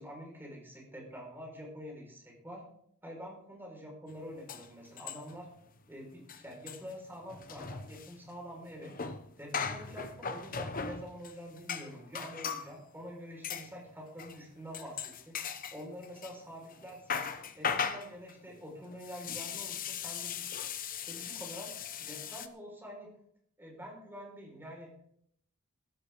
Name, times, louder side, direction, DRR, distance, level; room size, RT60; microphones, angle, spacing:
voice 1, 0.0-2.6 3.0-5.5 5.9-8.9 9.4-15.4 15.7-17.2 17.6-20.5 20.8-23.1 23.6-25.1, equal, 10° right, -1 dB, 5.4 m, -46 dB
sound 1, 4.1-4.2 4.5-5.5 5.8-5.9 6.2-12.7 13.4-13.7 14.2-14.4 14.7-16.4 16.7-22.5, left 6 dB, 40° left, 1.0 m, -39 dB
15.0 x 14.0 x 3.9 m, 0.69 s
head